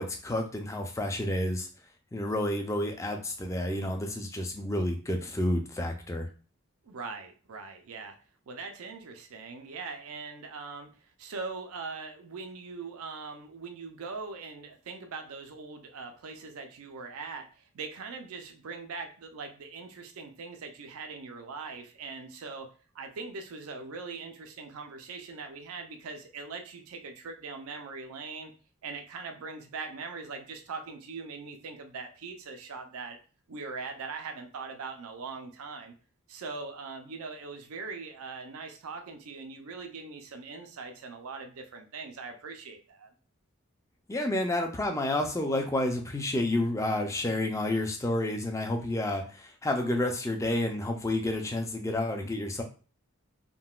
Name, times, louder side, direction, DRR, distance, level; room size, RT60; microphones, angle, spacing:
voice 1, 0.0-1.7 2.1-6.3 44.1-52.6, left 1 dB, 15° left, 4 dB, 0.3 m, -30 dB
voice 2, 6.8-8.2 8.5-22.7 22.9-28.5 28.8-33.2 33.5-35.9 36.3-43.1, right 4 dB, 85° right, 5 dB, 0.5 m, -41 dB
3.7 x 2.2 x 2.3 m, 0.37 s
head